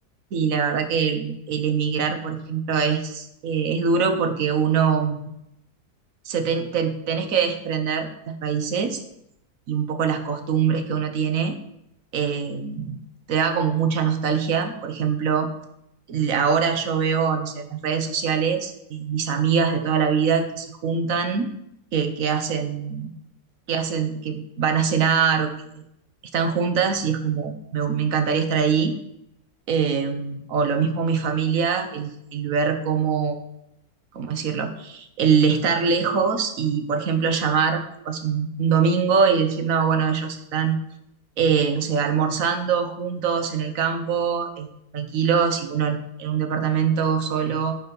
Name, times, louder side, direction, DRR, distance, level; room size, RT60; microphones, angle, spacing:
voice 1, 0.3-5.2 6.2-9.0 9.7-11.6 12.1-13.0 13.3-15.5 16.1-21.5 21.9-23.1 23.7-25.7 26.3-28.9 29.7-33.4 34.1-40.8 41.4-47.7, right 6 dB, 60° right, 7 dB, 1.2 m, -23 dB
9.8 x 4.2 x 5.3 m, 0.80 s
omnidirectional pair, 1.7 m